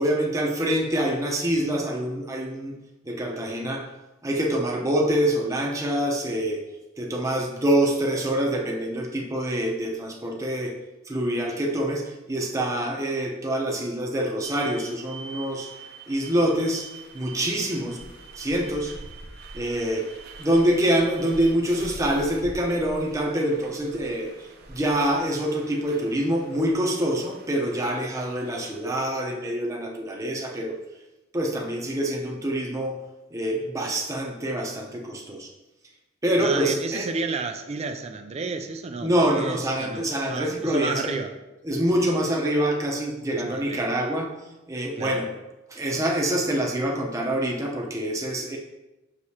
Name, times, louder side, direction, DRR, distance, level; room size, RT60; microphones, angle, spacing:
voice 1, 0.0-2.7 3.0-3.9 4.2-6.6 7.0-10.7 11.0-15.7 16.1-16.9 17.1-18.1 18.4-18.9 19.5-20.1 20.4-30.7 31.3-33.0 33.3-35.5 36.2-37.1 39.0-41.1 41.6-44.3 44.7-45.3 45.7-48.6, right 1 dB, 15° right, 0 dB, 0.8 m, -25 dB
sound 1, 14.4-28.8, right 3 dB, 55° right, 0.7 m, -44 dB
voice 2, 36.4-41.4 43.4-43.8 45.0-45.2, right 4 dB, 30° right, 7 dB, 0.4 m, -31 dB
6.4 x 6.1 x 2.9 m, 1.0 s
head